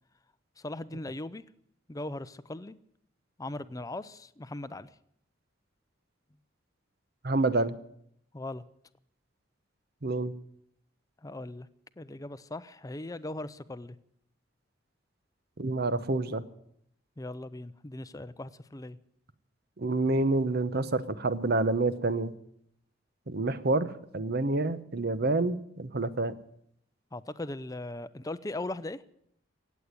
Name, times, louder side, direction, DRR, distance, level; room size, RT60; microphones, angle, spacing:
voice 1, 0.6-1.5 1.9-2.8 3.4-4.9 8.3-8.6 11.2-11.7 12.0-14.0 17.2-19.0 27.1-29.0, left 2 dB, 20° left, 14 dB, 0.6 m, -39 dB
voice 2, 7.2-7.8 10.0-10.3 15.6-16.4 19.8-22.3 23.3-26.3, right 2 dB, 55° right, 14 dB, 0.9 m, -28 dB
17.0 x 8.4 x 9.6 m, 0.72 s
head